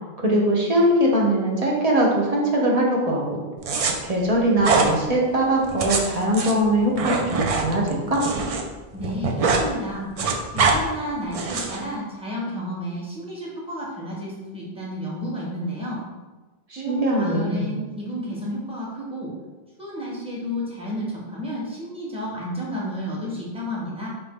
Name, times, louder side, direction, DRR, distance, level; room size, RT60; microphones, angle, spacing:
voice 1, 0.2-3.4 4.0-8.2 16.7-17.7, right 1 dB, 40° right, -2 dB, 0.8 m, -21 dB
sound 1, 3.6-3.9 4.6-4.9 5.6-8.6 8.9-9.7 9.9-10.8 11.3-11.8, right 4 dB, 55° right, 0.4 m, -23 dB
voice 2, 8.9-10.1 10.5-16.0 16.8-19.3 19.8-24.1, equal, 5° right, -6 dB, 0.9 m, -31 dB
4.4 x 2.6 x 3.5 m, 1.2 s
omnidirectional pair, 1.1 m